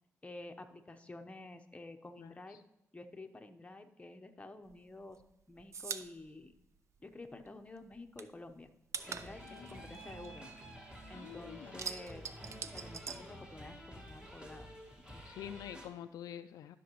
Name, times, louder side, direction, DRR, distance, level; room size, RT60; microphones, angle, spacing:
voice 1, 0.2-2.6 2.9-5.2 5.5-6.5 7.0-8.7 9.0-10.4 11.1-12.3 12.6-14.7 15.1-15.2, left 2 dB, 20° left, 6 dB, 0.9 m, -50 dB
sound 1, 4.7-7.5 7.8-11.1 11.4-14.0 14.2-15.4, right 6 dB, 50° right, 0.5 m, -45 dB
sound 2, 9.0-15.9, equal, 15° right, 1.9 m, -50 dB
voice 2, 9.5-10.0 11.1-11.8 15.3-16.8, left 10 dB, 85° left, 10 dB, 0.4 m, -47 dB
12.5 x 6.0 x 3.1 m, 0.88 s
cardioid pair, 75°, 6 cm